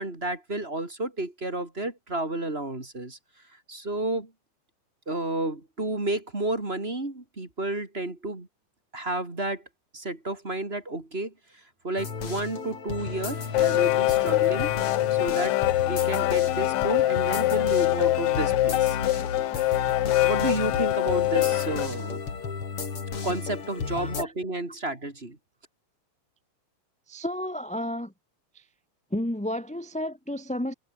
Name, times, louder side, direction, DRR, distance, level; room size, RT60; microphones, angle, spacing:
voice 1, 0.0-3.2 3.5-4.3 5.1-8.5 8.9-9.6 9.9-14.7 15.1-19.0 20.2-22.2 23.2-25.4, right 2 dB, 20° right, 3.2 m, -31 dB
sound 1, 12.0-24.3, left 5 dB, 50° left, 4.2 m, -34 dB
sound 2, 12.6-12.7 13.0-22.1, right 5 dB, 75° right, 5.5 m, -52 dB
sound 3, 13.0-21.9, left 16 dB, 75° left, 2.1 m, -24 dB
voice 2, 27.1-28.1 28.5-28.6 29.1-30.7, left 1 dB, 5° left, 1.6 m, -31 dB
omnidirectional pair, 3.4 m